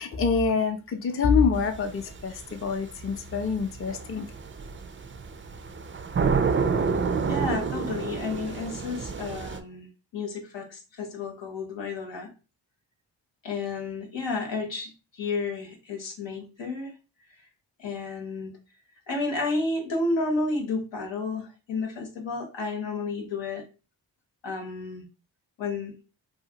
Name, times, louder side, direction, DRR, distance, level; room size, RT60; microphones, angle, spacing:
voice 1, 0.0-4.3, left 5 dB, 30° left, 0.5 m, -26 dB
sound 1, 1.5-9.6, right 5 dB, 30° right, 0.4 m, -29 dB
voice 2, 7.2-12.3 13.4-16.9 17.8-18.5 19.1-23.6 24.4-25.1 25.6-25.9, left 3 dB, 80° left, 0.8 m, -31 dB
2.7 x 2.5 x 2.8 m
cardioid pair, 40°, 44 cm